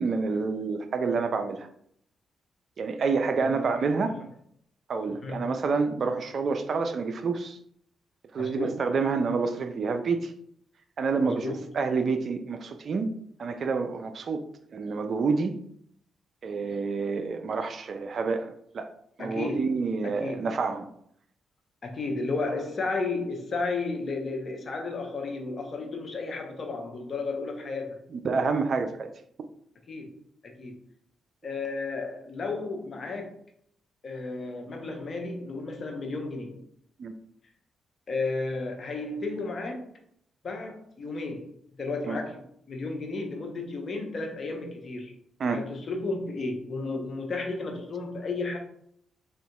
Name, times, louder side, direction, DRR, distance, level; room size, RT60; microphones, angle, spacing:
voice 1, 0.0-1.7 2.8-4.2 4.9-7.6 8.3-10.3 11.0-11.5 11.7-13.1 13.4-14.4 14.7-15.6 16.4-18.9 19.2-20.9 28.2-29.1 37.0-37.1 42.1-42.2 45.4-45.6, right 4 dB, 55° right, 0.3 m, -28 dB
voice 2, 3.3-3.8 4.1-4.2 5.2-5.5 8.4-8.8 11.2-11.7 19.2-20.4 21.8-28.0 29.9-30.1 30.4-30.8 31.4-33.3 34.0-36.6 38.1-39.9 40.4-41.5 41.8-45.1 45.5-48.6, left 3 dB, 50° left, 0.7 m, -33 dB
3.8 x 2.4 x 2.3 m
hypercardioid pair, 40°, 0 cm